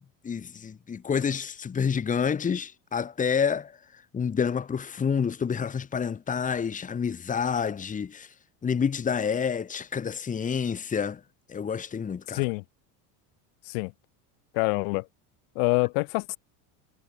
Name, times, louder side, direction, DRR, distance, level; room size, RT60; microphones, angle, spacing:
voice 1, 0.2-8.3 8.6-11.2 11.5-12.4, left 6 dB, 15° left, 3.8 m, -28 dB
voice 2, 12.3-12.6 13.7-13.9 14.5-15.1 15.5-16.4, left 40 dB or more, 65° left, 6.3 m, -26 dB
cardioid pair, 170°, 45 cm